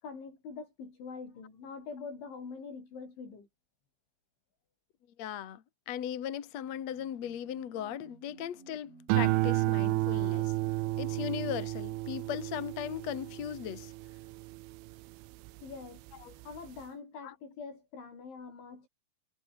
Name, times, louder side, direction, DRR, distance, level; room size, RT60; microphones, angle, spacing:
voice 1, 0.0-3.5 15.6-16.0 16.5-18.9, left 5 dB, 80° left, 10.0 m, -44 dB
voice 2, 5.2-10.5 11.0-13.9 16.2-16.4 17.2-17.3, left 10 dB, 50° left, 2.3 m, -38 dB
sound 1, 6.5-11.8, right 3 dB, 35° right, 8.6 m, -57 dB
sound 2, 9.1-15.6 16.1-16.6, right 19 dB, 85° right, 3.3 m, -32 dB
omnidirectional pair, 5.3 m